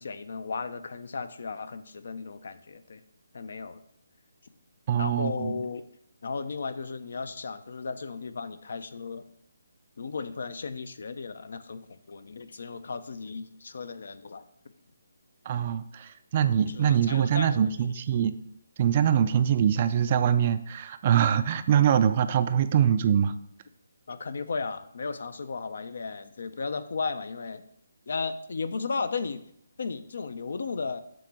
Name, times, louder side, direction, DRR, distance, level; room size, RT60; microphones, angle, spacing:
voice 1, 0.0-3.0 3.3-3.8 5.0-5.9 6.2-9.2 10.0-14.4 16.4-17.8 24.1-27.6 28.1-29.4 29.8-31.0, left 4 dB, 65° left, 12 dB, 0.5 m, -35 dB
voice 2, 4.9-5.6 15.5-18.3 18.8-23.3, right 9 dB, 35° right, 12 dB, 0.4 m, -23 dB
7.5 x 2.9 x 6.1 m, 0.70 s
hypercardioid pair, 160°, 0 cm